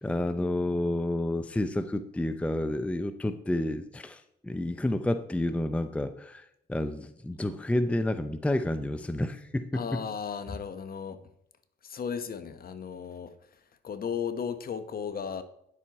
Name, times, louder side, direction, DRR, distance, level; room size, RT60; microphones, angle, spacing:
voice 1, 0.0-9.8, left 1 dB, 5° left, 0.6 m, -30 dB
voice 2, 9.7-11.2 11.8-15.4, left 7 dB, 50° left, 1.1 m, -35 dB
9.9 x 7.6 x 4.1 m
cardioid pair, 90°, 20 cm